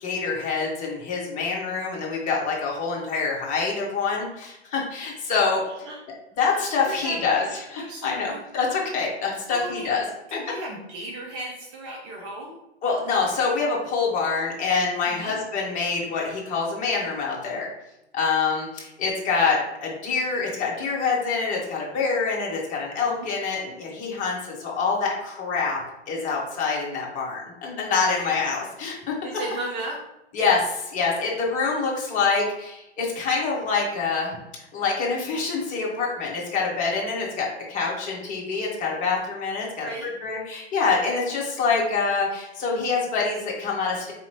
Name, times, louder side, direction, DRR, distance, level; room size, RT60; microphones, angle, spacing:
voice 1, 0.0-5.6 6.4-10.0 10.3-10.4 12.8-17.7 18.1-25.8 26.1-29.1 30.3-34.3 34.7-39.9 40.2-44.1, left 4 dB, 25° left, -2 dB, 1.0 m, -26 dB
voice 2, 6.5-8.4 9.5-9.9 10.3-12.6 15.1-15.3 23.1-23.3 28.1-28.3 29.1-30.0 39.8-40.1, right 2 dB, 30° right, -2 dB, 0.7 m, -36 dB
4.1 x 2.9 x 2.9 m, 0.90 s
figure-of-eight pair, 110°, 33 cm